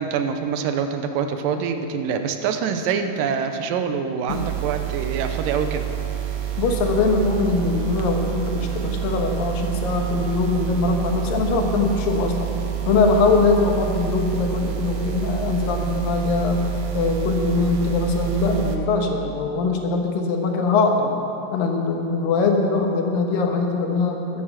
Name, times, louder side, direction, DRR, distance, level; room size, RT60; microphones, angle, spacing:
voice 1, 0.0-5.9, right 6 dB, 90° right, 7 dB, 2.5 m, -25 dB
sound 1, 4.3-18.8, right 11 dB, 70° right, 1.8 m, -28 dB
voice 2, 6.6-12.5 12.9-16.7 16.9-21.1 21.5-24.4, left 3 dB, 85° left, 2 dB, 3.0 m, -22 dB
13.5 x 11.5 x 5.9 m, 2.9 s
omnidirectional pair, 3.9 m